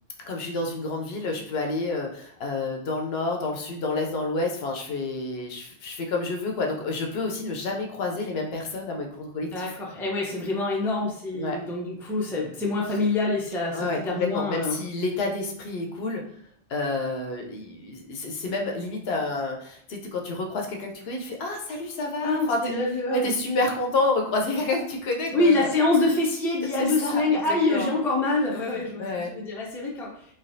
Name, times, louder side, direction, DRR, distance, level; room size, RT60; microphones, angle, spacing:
voice 1, 0.2-9.7 11.3-11.6 13.7-16.2 16.7-22.7 23.1-25.7 26.8-27.4 27.7-27.9 28.5-29.3, left 2 dB, 75° left, 1 dB, 0.8 m, -29 dB
voice 2, 9.5-14.8 22.2-23.6 25.3-30.1, left 2 dB, 5° left, -3 dB, 0.3 m, -26 dB
3.1 x 2.3 x 2.6 m, 0.64 s
omnidirectional pair, 1.1 m